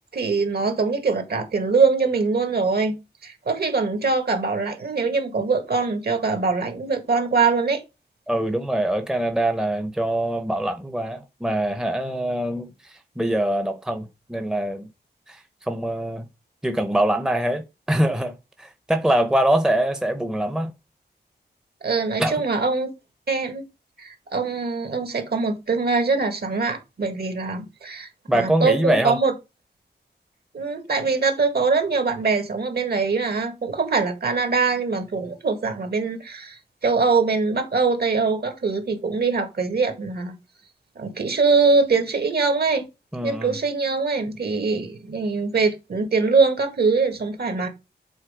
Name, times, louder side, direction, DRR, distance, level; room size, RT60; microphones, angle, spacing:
voice 1, 0.1-3.0 3.2-7.8 21.8-22.9 23.3-23.6 24.0-29.3 30.5-40.4 41.0-42.9 43.2-47.7, right 4 dB, 65° right, 1.9 m, -23 dB
voice 2, 8.3-14.9 15.3-16.2 16.6-17.6 17.9-20.7 22.2-22.4 28.3-29.2 43.1-43.6, right 1 dB, 5° right, 0.7 m, -24 dB
7.7 x 4.1 x 5.1 m
wide cardioid pair, 150°, 18 cm